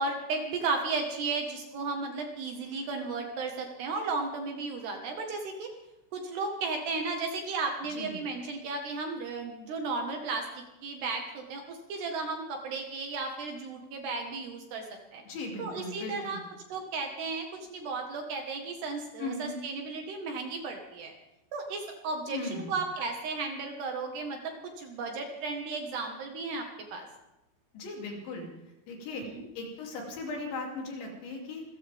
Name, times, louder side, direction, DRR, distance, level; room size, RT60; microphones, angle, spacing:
voice 1, 0.0-5.7 6.1-14.8 15.1-15.2 15.6-16.4 16.7-21.1 21.5-27.1 29.1-29.5, right 3 dB, 65° right, 3 dB, 3.2 m, -34 dB
voice 2, 15.3-16.4 19.2-19.5 22.3-22.7 27.7-28.5 28.9-29.3 29.6-31.6, left 2 dB, 65° left, 0 dB, 5.2 m, -38 dB
27.5 x 14.5 x 3.6 m, 0.95 s
omnidirectional pair, 6.0 m